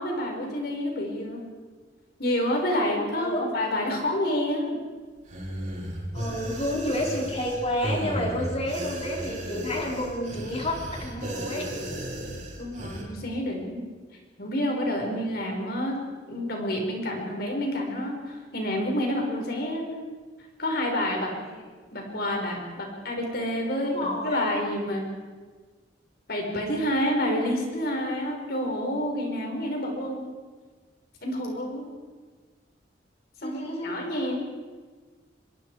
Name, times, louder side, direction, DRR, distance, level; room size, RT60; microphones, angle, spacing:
voice 1, 0.0-1.4 2.2-4.8 12.6-13.8 14.4-15.9 16.3-19.9 20.6-21.3 21.9-25.1 26.3-30.2 31.2-31.9 33.4-34.4, left 1 dB, 60° left, 1 dB, 5.7 m, -28 dB
sound 1, 5.2-13.0, right 1 dB, 40° right, 6.1 m, -34 dB
voice 2, 6.1-11.7 21.4-21.6 23.8-24.5 33.4-34.0, left 1 dB, 35° left, -1 dB, 4.5 m, -30 dB
25.5 x 22.0 x 5.1 m, 1.4 s
head